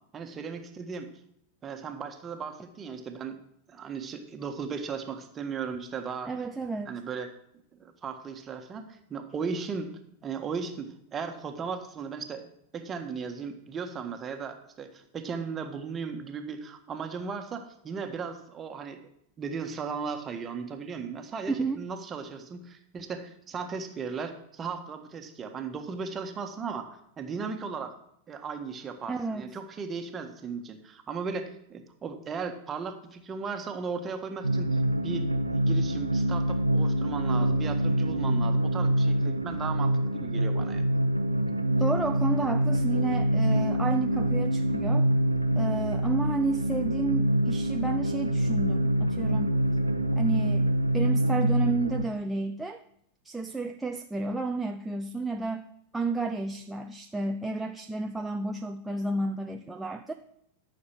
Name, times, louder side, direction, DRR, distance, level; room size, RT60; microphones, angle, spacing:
voice 1, 0.1-1.1 1.6-3.4 3.7-6.3 6.9-7.3 7.8-9.9 10.2-19.0 19.4-28.0 28.3-40.8, right 5 dB, 25° right, 5 dB, 1.5 m, -36 dB
voice 2, 6.2-6.9 21.5-21.8 29.1-29.5 41.8-45.1 45.6-49.5 50.2-52.8 53.2-55.6 55.9-60.1, right 3 dB, 5° right, 4 dB, 0.6 m, -31 dB
sound 1, 34.4-52.0, right 1 dB, 85° right, 0.8 m, -25 dB
13.0 x 6.6 x 6.0 m, 0.73 s
figure-of-eight pair, 90°, 0 cm